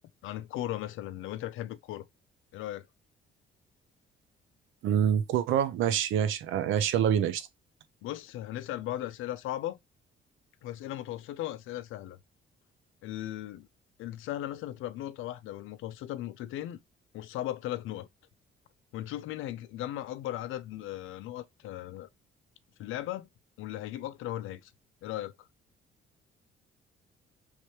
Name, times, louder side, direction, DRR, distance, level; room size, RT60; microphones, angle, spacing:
voice 1, 0.2-2.0 2.5-2.9 8.0-9.8 10.6-12.2 13.0-13.7 14.0-16.8 17.1-18.1 18.9-22.1 22.8-23.3 23.6-24.7 25.0-25.3, left 13 dB, 85° left, 0.5 m, -37 dB
voice 2, 4.8-7.5, right 9 dB, 85° right, 0.7 m, -26 dB
3.2 x 3.0 x 3.1 m
cardioid pair, 90°, 20 cm